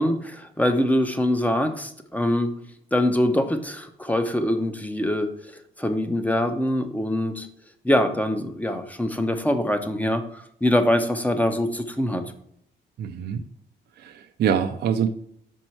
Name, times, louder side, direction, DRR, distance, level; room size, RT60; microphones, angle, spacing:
voice 1, 0.0-2.6 2.9-5.5 5.8-7.5 7.8-12.2, left 1 dB, 10° left, 7 dB, 0.7 m, -24 dB
voice 2, 13.0-13.4 14.0-15.1, right 8 dB, 55° right, 6 dB, 0.5 m, -25 dB
5.3 x 4.5 x 4.4 m, 0.70 s
cardioid pair, 90°, 20 cm